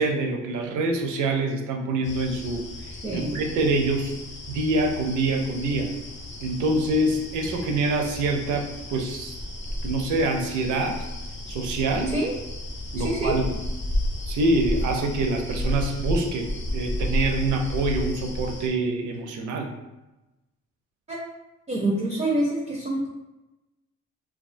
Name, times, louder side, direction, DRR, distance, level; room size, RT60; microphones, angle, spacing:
voice 1, 0.0-2.6 3.1-4.1 4.5-5.9 6.4-9.3 9.8-11.0 11.5-12.2 12.9-13.6 14.2-19.7, right 2 dB, 75° right, 3 dB, 0.5 m, -25 dB
sound 1, 2.0-18.7, left 1 dB, 40° left, 0.6 m, -32 dB
voice 2, 3.0-3.3 12.1-12.3 13.0-13.4 21.1-21.2 21.7-23.1, right 1 dB, 25° right, -3 dB, 0.4 m, -26 dB
2.3 x 2.2 x 2.5 m, 1.0 s
cardioid pair, 90°, 30 cm